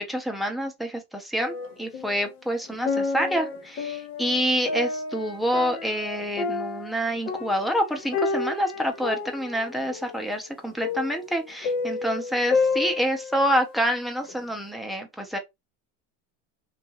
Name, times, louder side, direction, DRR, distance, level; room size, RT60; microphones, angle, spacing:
voice 1, 0.0-15.4, equal, ahead, 0.4 m, -27 dB
sound 1, 1.4-2.3 2.7-13.8 14.2-14.3, left 4 dB, 85° left, 1.1 m, -30 dB
2.9 x 2.4 x 2.7 m
supercardioid pair, 125°, 41 cm